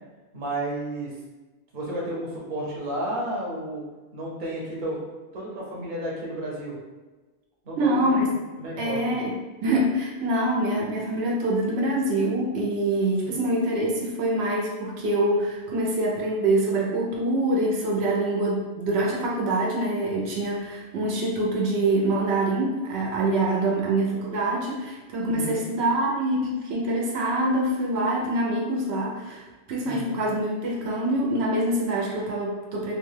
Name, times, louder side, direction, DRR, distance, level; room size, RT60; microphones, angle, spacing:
voice 1, 0.3-1.1 1.7-3.8 4.1-5.0 5.3-6.8 7.6-8.3 8.6-9.1 25.2-25.6 29.8-30.2, right 1 dB, 55° right, -3 dB, 0.8 m, -32 dB
voice 2, 7.8-8.3 8.8-9.3 9.6-33.0, right 1 dB, 85° right, -3 dB, 0.8 m, -25 dB
2.4 x 2.2 x 3.2 m, 1.2 s
omnidirectional pair, 1.1 m